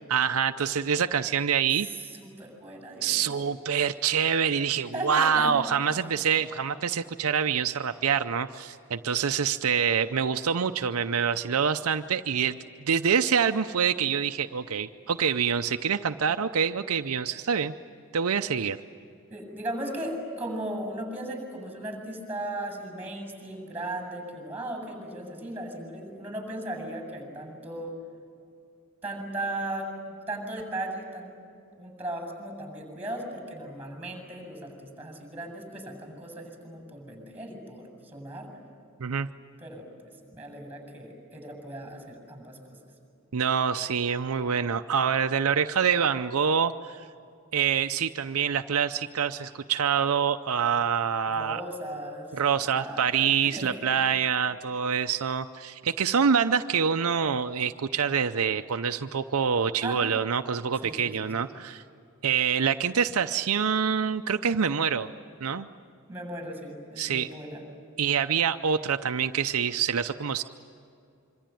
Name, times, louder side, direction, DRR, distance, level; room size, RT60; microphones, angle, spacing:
voice 1, 0.1-1.9 3.0-17.7 18.1-18.8 39.0-39.3 43.3-47.1 47.5-51.6 52.4-61.8 62.2-65.1 65.4-65.7 67.0-67.3 68.0-70.4, right 7 dB, 70° right, 8 dB, 0.6 m, -26 dB
voice 2, 2.0-3.4 4.9-5.5 18.6-18.7 19.3-27.9 29.0-29.9 30.3-31.3 31.8-38.5 39.6-39.9 40.4-42.8 51.4-53.8 59.8-60.0 60.8-61.4 66.1-67.6, right 1 dB, 10° right, 5 dB, 7.3 m, -37 dB
25.5 x 25.0 x 9.2 m, 2.5 s
head